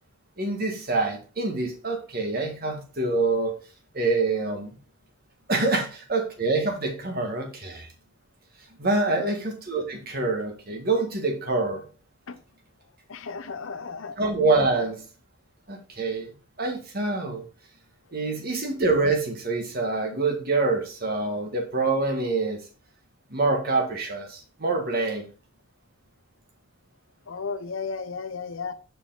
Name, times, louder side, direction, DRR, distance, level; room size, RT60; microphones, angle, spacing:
voice 1, 0.4-3.6 3.9-4.7 5.5-7.9 8.8-11.8 14.2-15.0 15.7-17.4 18.1-22.6 23.3-25.3, right 3 dB, 50° right, 1.7 m, -26 dB
voice 2, 13.1-14.2 27.3-28.7, left 5 dB, 85° left, 0.8 m, -34 dB
6.8 x 5.1 x 3.9 m
head